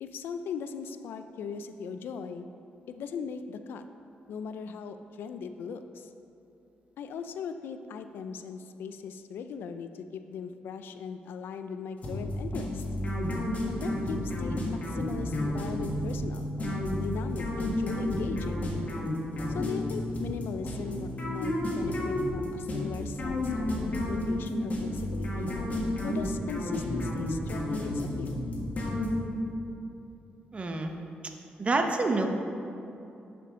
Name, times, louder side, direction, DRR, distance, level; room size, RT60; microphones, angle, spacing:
voice 1, 0.0-2.5 2.9-3.8 4.3-6.1 7.0-12.8 13.7-16.4 17.0-18.7 19.5-23.7 24.1-25.5 26.0-28.4, left 6 dB, 85° left, 9 dB, 0.4 m, -38 dB
sound 1, 12.0-29.5, left 1 dB, 45° left, 1.6 m, -31 dB
sound 2, 15.3-18.8, right 1 dB, 20° left, 2.0 m, -38 dB
voice 2, 30.5-30.9 31.6-32.3, right 3 dB, 35° right, 4 dB, 0.8 m, -27 dB
11.0 x 5.2 x 3.7 m, 2.8 s
cardioid pair, 95°, 4 cm